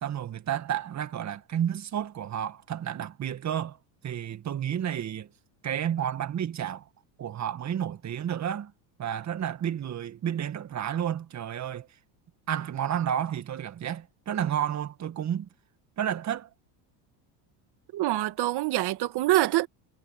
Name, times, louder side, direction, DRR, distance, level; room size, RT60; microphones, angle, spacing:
voice 1, 0.0-3.8 4.0-5.3 5.6-6.9 7.2-8.7 9.0-11.9 12.5-15.5 16.0-16.5, right 9 dB, 35° right, 1.9 m, -31 dB
voice 2, 17.9-19.7, right 16 dB, 50° right, 2.1 m, -25 dB
supercardioid pair, 115°, 49 cm